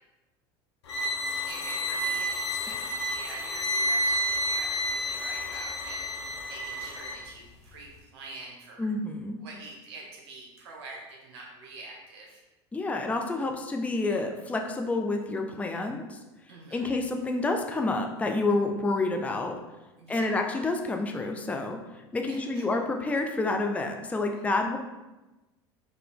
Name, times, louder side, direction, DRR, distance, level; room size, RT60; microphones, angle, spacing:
sound 1, 0.9-7.2, equal, 85° left, 0.6 m, -30 dB
voice 1, 1.4-6.1 6.4-8.9 9.4-12.4 16.5-16.9 20.0-20.4 22.3-22.6 24.3-24.5, right 3 dB, 75° right, -2 dB, 0.9 m, -45 dB
voice 2, 8.8-9.3 12.7-16.2 16.7-19.6 20.1-21.8 22.1-24.8, left 2 dB, 10° left, 3 dB, 0.4 m, -28 dB
4.1 x 2.7 x 3.4 m, 1.1 s
hypercardioid pair, 85°, 14 cm